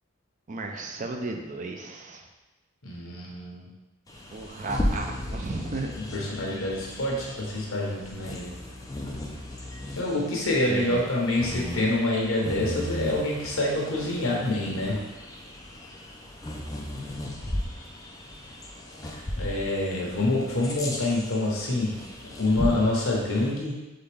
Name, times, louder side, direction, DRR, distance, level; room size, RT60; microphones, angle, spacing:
voice 1, 0.5-2.3 4.3-5.9 10.7-11.1, right 3 dB, 40° right, 3 dB, 0.4 m, -34 dB
voice 2, 2.8-3.7 6.1-8.5 9.9-15.0 19.0-22.0 22.4-23.8, left 2 dB, 75° left, -2 dB, 1.0 m, -27 dB
Bird vocalization bird call bird song, 4.1-23.5, left 1 dB, 15° left, 0.5 m, -36 dB
3.9 x 3.4 x 3.4 m, 1.1 s
head